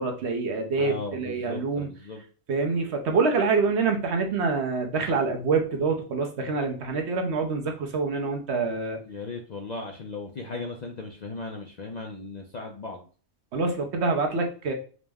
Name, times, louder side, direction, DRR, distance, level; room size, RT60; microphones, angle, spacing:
voice 1, 0.0-1.9 2.5-9.0 13.5-14.7, right 4 dB, 70° right, 3 dB, 1.0 m, -26 dB
voice 2, 0.8-2.2 9.0-13.0, left 3 dB, 50° left, 2 dB, 0.5 m, -37 dB
5.1 x 2.1 x 3.4 m, 0.39 s
omnidirectional pair, 1.2 m